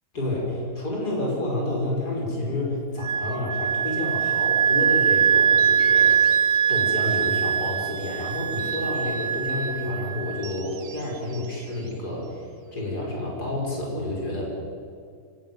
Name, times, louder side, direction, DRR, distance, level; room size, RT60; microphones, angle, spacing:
voice 1, 0.1-6.1 6.7-14.4, left 1 dB, 70° left, -2 dB, 6.1 m, -29 dB
Wind instrument woodwind instrument, 3.0-10.5, right 7 dB, 40° right, 0.6 m, -22 dB
sound 1, 5.4-7.5 7.9-9.8 10.4-12.9, right 6 dB, 65° right, 1.7 m, -45 dB
24.5 x 18.0 x 9.5 m, 2.3 s
omnidirectional pair, 1.7 m